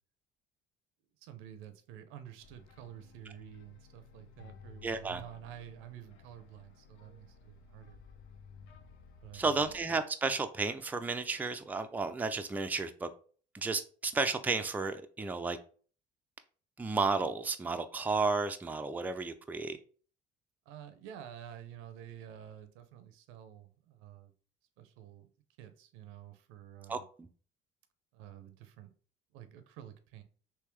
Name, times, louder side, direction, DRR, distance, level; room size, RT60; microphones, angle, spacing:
voice 1, 1.2-8.0 9.2-9.7 20.7-24.3 24.8-25.3 25.6-27.1 28.1-28.9 29.3-30.2, right 10 dB, 85° right, 0.6 m, -50 dB
sound 1, 2.4-9.8, left 5 dB, 85° left, 0.6 m, -56 dB
voice 2, 4.8-5.2 9.3-13.1 13.5-15.6 16.8-19.8 26.9-27.3, right 4 dB, 10° right, 0.4 m, -33 dB
3.5 x 2.8 x 3.1 m
supercardioid pair, 90°, 21 cm